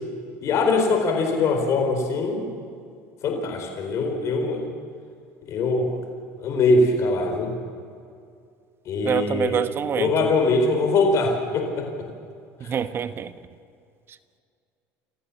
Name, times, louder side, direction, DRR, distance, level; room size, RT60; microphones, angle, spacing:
voice 1, 0.4-2.5 3.2-4.7 5.5-6.0 6.4-7.6 8.9-9.6 10.0-12.1 12.6-12.8, left 3 dB, 50° left, 4 dB, 4.2 m, -22 dB
voice 2, 9.0-10.3 12.7-13.3, right 7 dB, 40° right, 12 dB, 1.2 m, -26 dB
28.5 x 15.0 x 7.3 m, 2.3 s
supercardioid pair, 100°, 6 cm